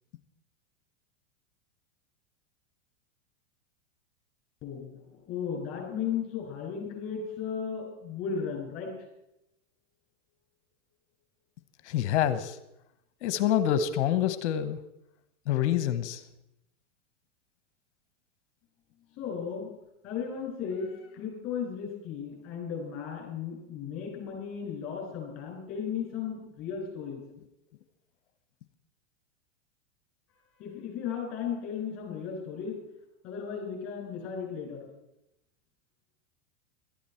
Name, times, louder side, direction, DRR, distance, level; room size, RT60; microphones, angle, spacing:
voice 1, 4.6-4.9 5.3-8.9 19.2-19.7 20.0-27.2 30.6-32.8 33.2-34.9, left 7 dB, 35° left, 0 dB, 6.5 m, -35 dB
voice 2, 11.8-12.6 13.2-14.8 15.5-16.2, left 10 dB, 65° left, 12 dB, 1.1 m, -26 dB
17.5 x 13.5 x 4.5 m, 0.85 s
hypercardioid pair, 120°, 37 cm